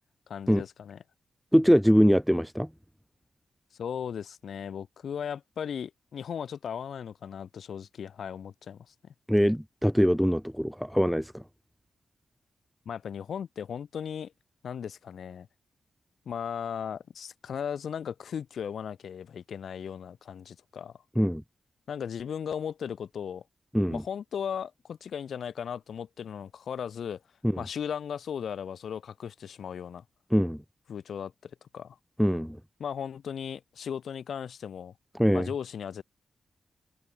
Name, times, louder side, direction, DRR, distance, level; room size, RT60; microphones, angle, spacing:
voice 1, 0.3-1.0 3.8-9.1 12.9-14.3 14.6-15.5 16.3-21.0 21.9-23.4 23.9-27.2 27.6-30.0 30.9-32.0 32.8-34.9 35.3-36.0, left 8 dB, 75° left, 0.8 m, -37 dB
voice 2, 1.5-2.7 9.3-11.4 21.2-21.4 23.7-24.0 27.4-27.6 30.3-30.6 32.2-32.6 35.1-35.5, equal, ahead, 0.4 m, -23 dB
cardioid pair, 80°, 0 cm